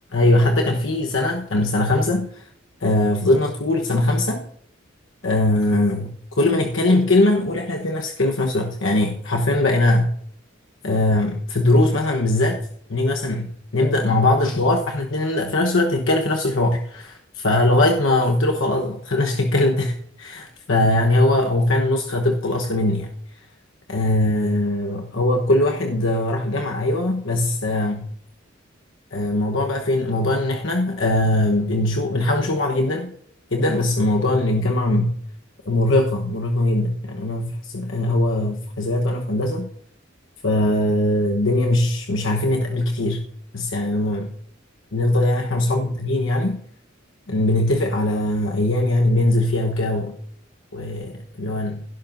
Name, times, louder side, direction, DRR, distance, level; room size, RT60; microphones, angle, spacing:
voice 1, 0.1-2.5 2.8-4.4 5.2-10.1 10.8-23.4 23.9-28.1 29.1-33.1 33.5-35.1 35.6-39.7 40.4-43.3 43.5-44.3 44.9-46.6 47.3-50.2 50.7-51.8, left 1 dB, 70° left, 1 dB, 1.2 m, -21 dB
16.5 x 12.0 x 2.6 m, 0.66 s
head